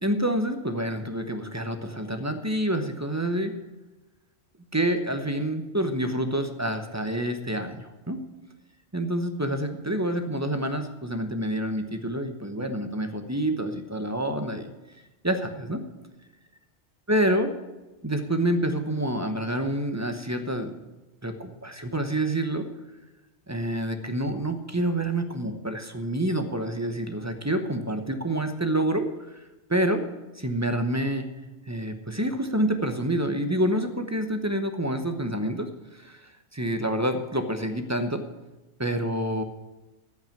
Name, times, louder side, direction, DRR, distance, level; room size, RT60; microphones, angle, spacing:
voice 1, 0.0-3.5 4.7-8.2 8.9-14.7 15.2-15.8 17.1-17.5 18.0-20.7 21.2-22.6 23.5-29.4 29.7-30.0 30.3-31.3 31.7-38.2 38.8-39.4, right 1 dB, 15° right, 7 dB, 0.8 m, -27 dB
14.0 x 5.9 x 9.1 m, 1.1 s
omnidirectional pair, 1.2 m